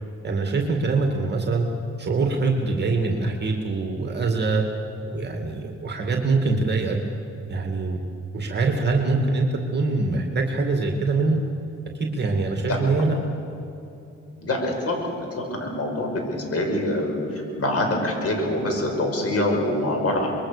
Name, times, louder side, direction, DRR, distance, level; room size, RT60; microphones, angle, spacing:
voice 1, 0.2-1.6 2.0-4.6 5.1-7.0 7.5-8.0 8.3-11.4 12.0-13.1, right 3 dB, 35° right, 2 dB, 2.4 m, -23 dB
voice 2, 14.4-20.3, left 1 dB, 50° left, 2 dB, 6.0 m, -25 dB
25.5 x 21.5 x 6.8 m, 2.9 s
cardioid pair, 90°, 30 cm